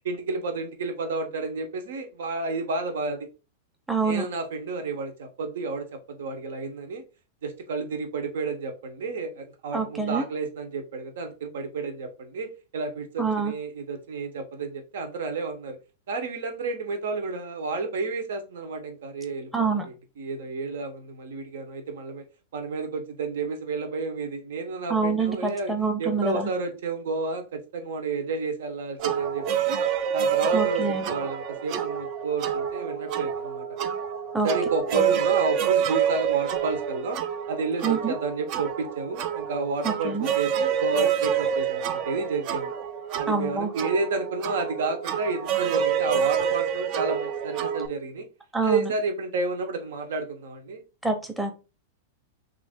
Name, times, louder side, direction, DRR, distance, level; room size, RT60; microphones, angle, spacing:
voice 1, 0.0-3.2 4.0-7.0 7.4-12.5 12.7-15.8 16.1-22.2 22.5-25.7 26.0-29.8 30.1-33.7 34.4-37.2 37.5-42.7 43.1-48.3 48.6-50.8, right 3 dB, 80° right, 6 dB, 0.9 m, -31 dB
voice 2, 3.9-4.2 9.7-10.2 13.2-13.5 19.5-19.9 24.9-26.5 30.5-31.0 34.3-34.5 34.9-35.1 37.8-38.1 39.8-40.3 43.3-43.7 48.5-48.9 51.0-51.5, right 4 dB, 5° right, 5 dB, 0.7 m, -26 dB
sound 1, 29.0-47.9, right 8 dB, 45° right, 0.4 m, -27 dB
3.2 x 2.6 x 3.5 m, 0.31 s
supercardioid pair, 140°, 0 cm